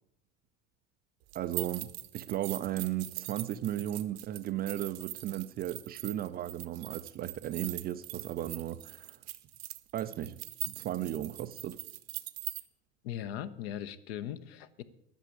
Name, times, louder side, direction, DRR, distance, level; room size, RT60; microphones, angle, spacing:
voice 1, 1.3-9.2 9.9-10.4 10.7-11.8, right 12 dB, 25° right, 0.4 m, -35 dB
sound 1, 1.3-12.6, right 18 dB, 55° right, 0.9 m, -42 dB
voice 2, 13.0-14.8, left 10 dB, 50° left, 0.8 m, -39 dB
12.0 x 6.8 x 8.9 m
figure-of-eight pair, 75°, 38 cm